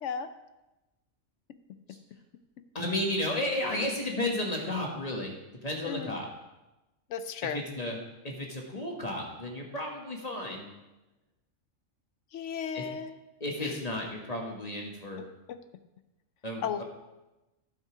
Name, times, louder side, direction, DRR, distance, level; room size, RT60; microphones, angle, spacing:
voice 1, 2.7-5.3 5.6-6.3 7.4-8.0 8.2-10.7 12.7-12.8 13.4-15.2 16.4-16.8, left 1 dB, 30° left, 0 dB, 1.4 m, -33 dB
voice 2, 5.8-6.1 7.1-7.6 12.3-13.1 13.6-13.8 15.5-15.6 16.6-16.8, left 7 dB, 70° left, 11 dB, 0.9 m, -35 dB
11.5 x 5.3 x 4.9 m, 1.0 s
omnidirectional pair, 1.3 m